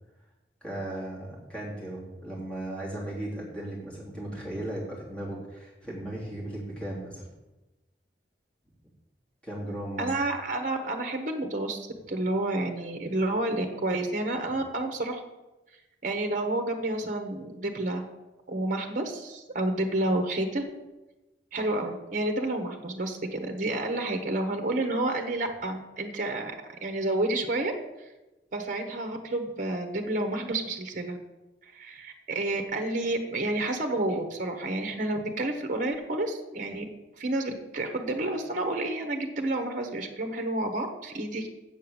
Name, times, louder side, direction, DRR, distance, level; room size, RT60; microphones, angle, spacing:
voice 1, 0.6-7.3 9.4-10.2, right 1 dB, 5° left, -5 dB, 3.2 m, -36 dB
voice 2, 10.0-15.2 16.0-18.1 18.5-20.8 21.5-26.5 26.8-27.7 28.5-31.2 31.7-36.9 37.2-41.5, right 2 dB, 45° right, 5 dB, 1.1 m, -30 dB
8.1 x 6.6 x 7.0 m, 1.0 s
head